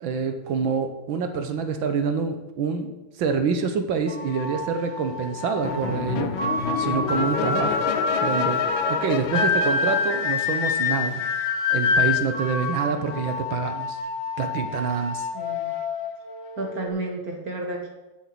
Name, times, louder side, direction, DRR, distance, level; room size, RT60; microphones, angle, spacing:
voice 1, 0.0-2.9 3.2-6.3 6.8-7.9 8.2-8.6 8.9-11.2 11.7-14.0 14.4-15.3, right 5 dB, 75° right, 8 dB, 1.6 m, -26 dB
sound 1, 4.1-16.9, left 4 dB, 45° left, 1.9 m, -27 dB
sound 2, 5.6-11.1, left 7 dB, 75° left, 1.5 m, -29 dB
voice 2, 15.3-15.8 16.6-17.9, right 2 dB, 50° right, 2 dB, 1.6 m, -31 dB
7.4 x 7.2 x 8.3 m, 1.1 s
omnidirectional pair, 2.2 m